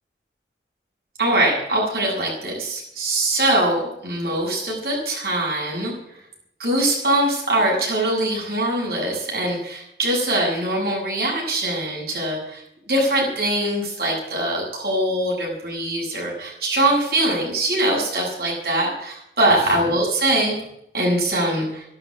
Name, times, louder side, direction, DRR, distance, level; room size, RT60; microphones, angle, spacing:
voice 1, 1.2-5.9 6.6-12.6 12.9-20.5 20.9-21.8, right 1 dB, 60° right, -2 dB, 7.7 m, -22 dB
12.0 x 11.5 x 8.8 m, 0.76 s
head